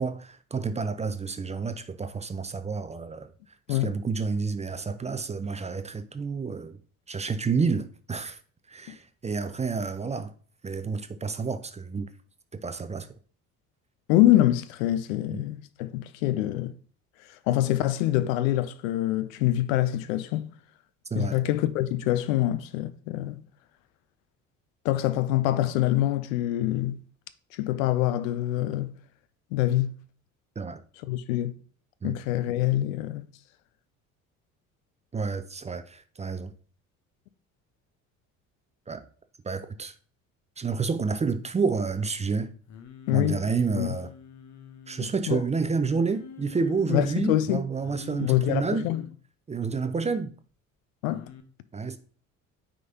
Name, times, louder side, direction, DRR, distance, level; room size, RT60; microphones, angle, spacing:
voice 1, 0.0-3.3 3.7-6.8 7.1-8.4 8.7-10.3 10.6-12.1 12.5-13.1 15.3-15.4 21.1-21.4 30.6-30.8 32.0-32.2 35.1-36.5 38.9-39.1 39.4-39.9 40.6-42.5 43.1-44.1 44.9-48.9 49.5-50.3 51.7-52.0, right 5 dB, 15° right, 0.5 m, -29 dB
voice 2, 14.1-16.7 17.5-20.5 21.1-23.4 24.8-27.0 27.5-28.9 29.5-30.0 31.1-31.5 32.0-33.2 43.1-43.4 43.8-44.0 45.0-45.4 46.9-47.6 48.2-49.0 51.0-51.2, left 14 dB, 70° left, 0.6 m, -25 dB
Singing, 42.7-45.1 45.7-46.9 47.8-49.1 51.1-51.4, left 8 dB, 45° left, 1.0 m, -44 dB
9.1 x 3.7 x 2.8 m
hypercardioid pair, 60°, 41 cm